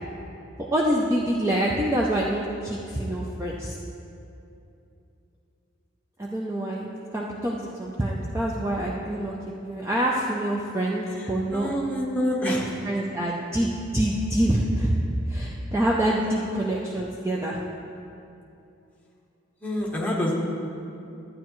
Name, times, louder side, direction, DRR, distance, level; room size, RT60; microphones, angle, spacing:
voice 1, 0.7-3.8 6.2-9.3 9.6-11.7 12.8-14.9 15.3-17.6, right 1 dB, 15° right, -3 dB, 0.5 m, -26 dB
voice 2, 11.1-12.7 19.6-20.4, equal, 5° left, -3 dB, 1.1 m, -27 dB
12.5 x 9.2 x 3.1 m, 2.7 s
head